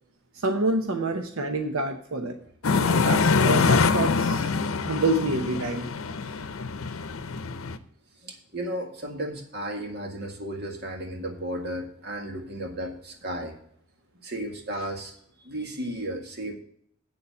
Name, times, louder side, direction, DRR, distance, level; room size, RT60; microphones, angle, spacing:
voice 1, 0.3-2.4 2.9-4.5 4.8-5.9 6.2-6.3, right 2 dB, 85° right, 5 dB, 0.8 m, -27 dB
sound 1, 2.6-7.8, left 4 dB, 85° left, 0.6 m, -24 dB
voice 2, 8.2-13.6 14.2-15.1 15.4-16.6, right 1 dB, 50° right, 3 dB, 1.8 m, -34 dB
8.2 x 6.9 x 6.9 m, 0.64 s
head